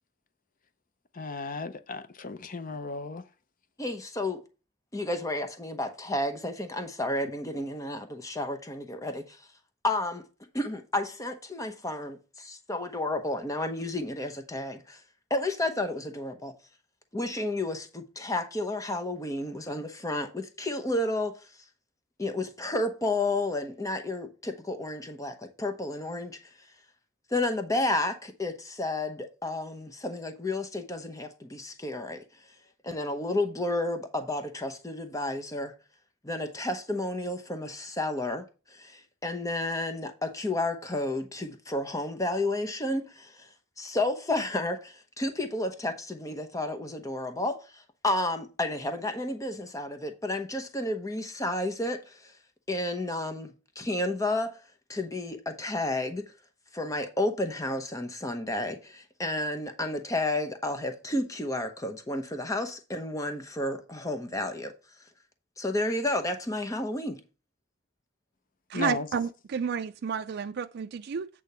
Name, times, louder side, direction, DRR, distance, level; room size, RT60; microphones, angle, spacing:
voice 1, 1.1-3.2 68.7-69.1, left 3 dB, 45° left, 0.7 m, -35 dB
voice 2, 3.8-4.4 4.9-9.4 9.8-10.2 10.5-15.0 15.3-16.5 17.1-21.3 22.2-26.4 27.3-32.2 32.8-35.7 36.2-38.4 38.7-43.5 43.8-52.3 52.7-54.6 54.9-56.2 56.7-64.7 65.6-67.2, left 2 dB, 15° left, 0.9 m, -31 dB
voice 3, 68.7-71.3, right 6 dB, 60° right, 0.4 m, -31 dB
8.4 x 3.5 x 6.6 m
head